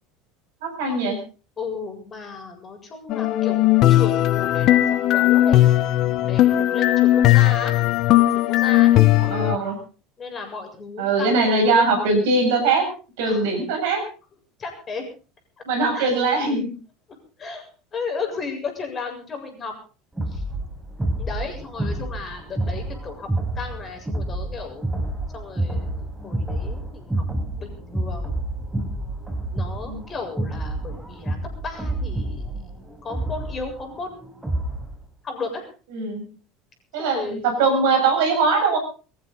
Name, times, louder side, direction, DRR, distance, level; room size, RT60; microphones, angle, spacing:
voice 1, 0.6-1.2 9.2-9.8 11.0-12.9 13.2-14.0 15.7-16.6 29.8-30.1 35.9-36.2 36.9-38.8, right 3 dB, 60° right, 4 dB, 7.5 m, -21 dB
voice 2, 1.6-3.6 3.9-5.7 6.2-7.8 8.2-8.9 10.2-11.4 13.2-13.5 14.6-15.1 15.9-16.1 17.4-19.7 20.3-20.4 21.2-23.3 23.6-27.2 27.6-28.3 29.5-31.4 31.6-32.5 33.0-34.3 35.2-35.7 37.0-37.5, left 4 dB, 30° left, 4 dB, 7.5 m, -34 dB
sound 1, 3.1-9.6, left 14 dB, 45° left, 1.1 m, -17 dB
sound 2, 20.2-34.9, right 1 dB, 5° right, 5.8 m, -29 dB
24.5 x 14.5 x 4.1 m, 0.38 s
figure-of-eight pair, 70°, 0 cm